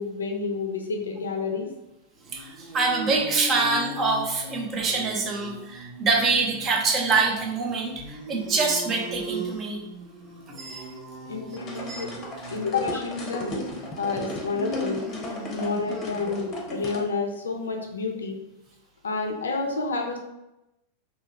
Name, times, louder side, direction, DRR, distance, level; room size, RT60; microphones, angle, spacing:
voice 1, 0.0-1.7 11.3-12.1 12.5-13.6 13.9-15.0 15.5-18.4 19.0-20.2, left 4 dB, 70° left, 2 dB, 0.4 m, -29 dB
sound 1, 2.2-16.7, equal, ahead, 1.1 m, -39 dB
voice 2, 2.3-9.8 10.5-10.9 11.9-12.0, right 4 dB, 30° right, 0 dB, 0.6 m, -25 dB
sound 2, 11.6-17.0, equal, 30° left, 0.7 m, -36 dB
2.7 x 2.3 x 2.8 m, 0.91 s
figure-of-eight pair, 90°, 0 cm